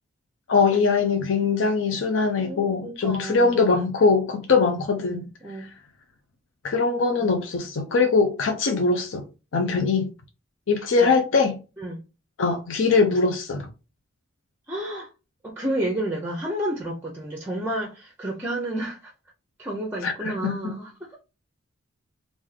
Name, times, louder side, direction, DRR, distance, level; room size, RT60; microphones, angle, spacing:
voice 1, 0.5-5.3 5.6-5.7 6.6-9.2 9.5-10.1 10.7-11.5 12.4-13.7 20.0-20.1 20.4-20.6, left 4 dB, 75° left, 0.5 m, -22 dB
voice 2, 2.4-3.6 5.0-5.7 7.2-7.3 7.9-8.1 11.0-11.1 11.8-12.0 14.7-15.1 15.4-19.1 19.6-21.2, right 1 dB, 10° right, 0.6 m, -31 dB
3.5 x 2.6 x 3.2 m
head